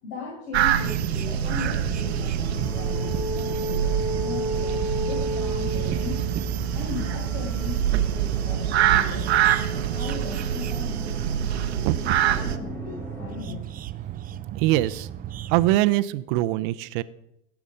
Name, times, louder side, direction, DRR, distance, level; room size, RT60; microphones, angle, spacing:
voice 1, 0.0-6.3 6.7-9.3 9.9-13.6, left 4 dB, 60° left, -3 dB, 5.6 m, -38 dB
sound 1, 0.5-12.6, right 10 dB, 85° right, 1.1 m, -26 dB
sound 2, 0.8-15.8, right 10 dB, 25° right, 0.6 m, -36 dB
sound 3, 1.0-13.4, right 1 dB, 5° left, 2.9 m, -34 dB
voice 2, 14.5-15.1 15.5-17.0, right 16 dB, 60° right, 14 dB, 0.8 m, -22 dB
17.5 x 7.3 x 5.4 m, 0.80 s
hypercardioid pair, 100°, 31 cm